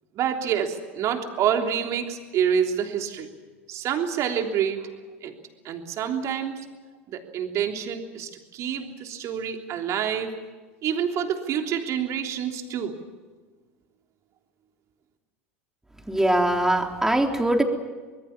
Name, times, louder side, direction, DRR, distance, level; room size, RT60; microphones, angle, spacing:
voice 1, 0.2-3.3 3.7-4.9 5.2-5.4 5.6-6.7 7.1-10.3 10.8-13.0, right 8 dB, 45° right, 4 dB, 3.4 m, -27 dB
voice 2, 16.1-17.6, right 1 dB, 5° right, 3 dB, 3.6 m, -22 dB
25.0 x 21.0 x 7.3 m, 1.4 s
hypercardioid pair, 80°, 7 cm